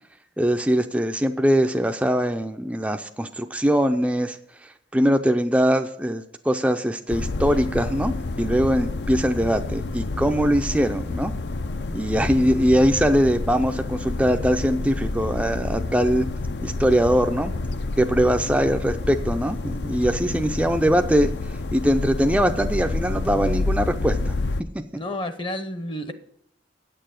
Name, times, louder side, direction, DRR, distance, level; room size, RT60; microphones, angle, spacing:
voice 1, 0.4-4.4 4.6-11.3 11.9-16.3 16.6-17.5 18.0-21.3 21.7-24.4 24.7-24.8, equal, 5° right, 5 dB, 0.4 m, -22 dB
sound 1, 7.1-24.6, left 2 dB, 70° left, 0.6 m, -29 dB
voice 2, 24.9-26.1, left 1 dB, 30° left, 10 dB, 0.7 m, -30 dB
8.9 x 6.8 x 7.6 m, 0.75 s
head